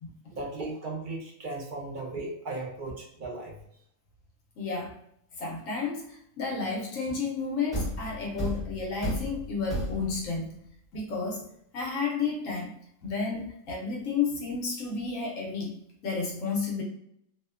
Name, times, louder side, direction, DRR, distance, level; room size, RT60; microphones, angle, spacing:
voice 1, 0.3-3.5, right 2 dB, 55° right, -2 dB, 0.5 m, -36 dB
voice 2, 4.6-4.9 5.4-10.5 10.9-11.4 11.7-12.7 13.0-16.8, left 4 dB, 75° left, -2 dB, 1.0 m, -32 dB
Thump thud, 7.7-10.4, equal, ahead, 1.0 m, -33 dB
2.7 x 2.1 x 2.3 m, 0.73 s
omnidirectional pair, 1.4 m